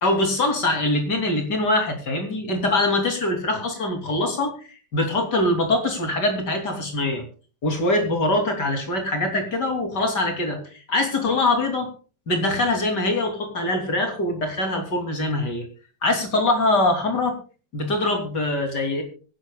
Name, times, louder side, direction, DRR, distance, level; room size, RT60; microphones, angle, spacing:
voice 1, 0.0-4.5 4.9-7.2 7.6-10.6 10.9-11.9 12.3-15.7 16.0-17.3 17.7-19.0, left 2 dB, 70° left, 4 dB, 3.8 m, -23 dB
24.0 x 10.5 x 2.4 m, 0.37 s
omnidirectional pair, 1.9 m